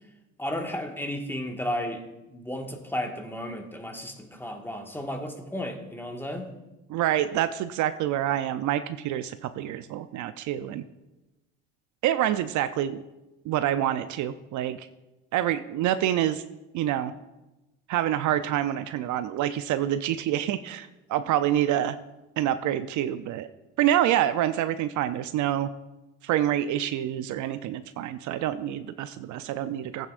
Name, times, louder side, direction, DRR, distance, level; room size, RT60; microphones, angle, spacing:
voice 1, 0.4-2.0 2.3-6.5, left 1 dB, 5° left, 2 dB, 1.7 m, -33 dB
voice 2, 6.9-10.8 12.0-13.0 13.5-14.9 15.3-16.4 16.7-17.1 17.9-22.0 22.4-23.5 23.8-25.7 26.2-30.1, right 12 dB, 60° right, 11 dB, 0.6 m, -27 dB
14.5 x 9.0 x 2.5 m, 1.0 s
hypercardioid pair, 70°, 35 cm